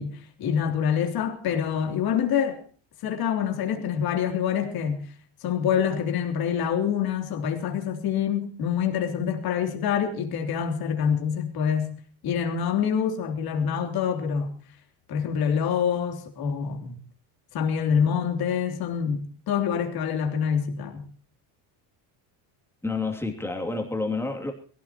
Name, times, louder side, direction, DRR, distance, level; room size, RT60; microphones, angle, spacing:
voice 1, 0.0-2.6 3.0-5.1 5.4-11.9 12.2-14.5 15.1-17.0 17.5-21.1, left 7 dB, 50° left, 3.4 m, -26 dB
voice 2, 22.8-24.5, left 3 dB, 5° left, 2.7 m, -29 dB
22.5 x 17.0 x 3.0 m
cardioid pair, 165°, 47 cm